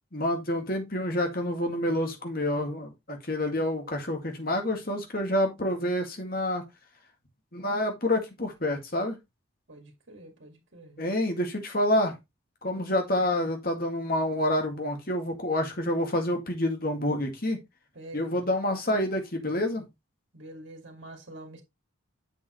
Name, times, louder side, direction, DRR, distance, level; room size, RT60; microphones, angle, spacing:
voice 1, 0.1-6.6 7.5-9.2 11.0-12.1 12.6-17.6 18.1-19.9, left 1 dB, 45° left, 2.1 m, -28 dB
voice 2, 9.7-11.0 12.7-13.1 17.9-18.4 20.3-21.6, right 1 dB, 60° right, 2.3 m, -46 dB
7.5 x 7.1 x 3.1 m
head